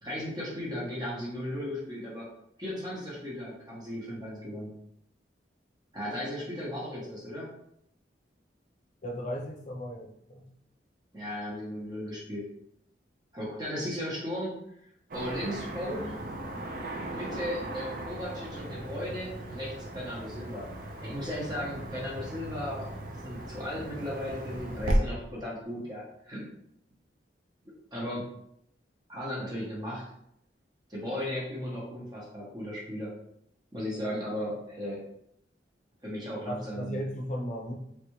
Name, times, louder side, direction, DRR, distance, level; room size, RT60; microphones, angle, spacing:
voice 1, 0.0-2.3 2.6-4.7 5.9-7.5 11.1-12.5 13.3-14.5 15.1-16.2 16.9-20.7 21.0-26.5 27.9-28.3 29.1-30.1 30.9-33.1 33.7-35.0 36.0-37.0, equal, 25° right, -5 dB, 0.9 m, -36 dB
voice 2, 9.0-10.5 36.5-37.7, equal, 45° left, -1 dB, 0.6 m, -36 dB
Car passing by / Traffic noise roadway noise, 15.1-25.0, right 1 dB, 50° right, 0.5 m, -36 dB
3.3 x 2.4 x 3.0 m, 0.75 s
head